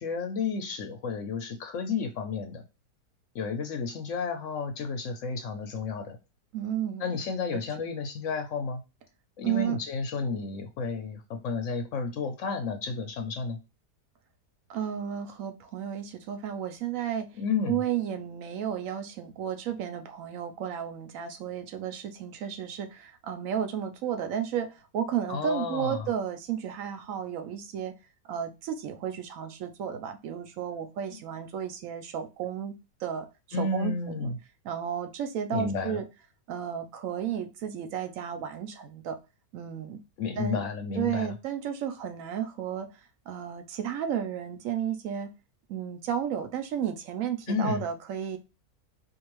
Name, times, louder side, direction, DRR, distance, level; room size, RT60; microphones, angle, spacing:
voice 1, 0.0-2.6 3.3-6.2 7.0-8.8 9.4-13.6 17.4-17.8 25.3-26.1 33.5-34.4 35.5-36.0 40.2-41.3 47.5-47.8, left 4 dB, 65° left, 6 dB, 0.8 m, -32 dB
voice 2, 6.5-7.1 7.5-7.6 9.4-9.8 14.7-17.3 17.7-27.9 28.2-32.7 33.0-33.3 33.6-34.3 34.6-36.0 36.5-39.2 39.5-40.0 40.4-40.6 40.9-42.9 43.3-45.3 45.7-48.4, right 9 dB, 65° right, 7 dB, 1.0 m, -33 dB
4.5 x 2.5 x 3.0 m, 0.28 s
omnidirectional pair, 1.7 m